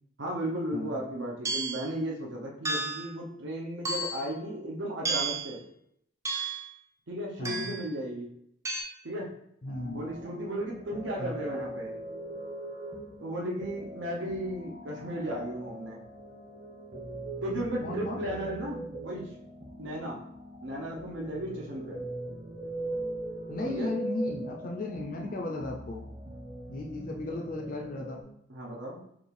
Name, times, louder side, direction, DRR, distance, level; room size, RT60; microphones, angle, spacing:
voice 1, 0.2-5.6 7.1-8.3 9.0-9.3 9.8-11.9 13.2-16.0 17.4-19.3 19.8-20.2 20.6-22.0 23.6-23.9 28.5-29.0, right 1 dB, 75° right, -2 dB, 0.7 m, -35 dB
sound 1, 1.4-1.9 2.6-3.1 3.8-4.3 5.0-5.5 6.2-6.7 7.4-7.8 8.6-8.8, right 3 dB, 15° right, 0.4 m, -32 dB
voice 2, 7.4-7.7 9.6-10.0 11.2-11.3 17.8-18.2 23.5-26.1 26.7-28.2, left 2 dB, 45° left, 0 dB, 0.4 m, -35 dB
sound 2, 9.7-28.2, right 2 dB, 45° right, 1.0 m, -41 dB
5.1 x 2.4 x 3.2 m, 0.73 s
head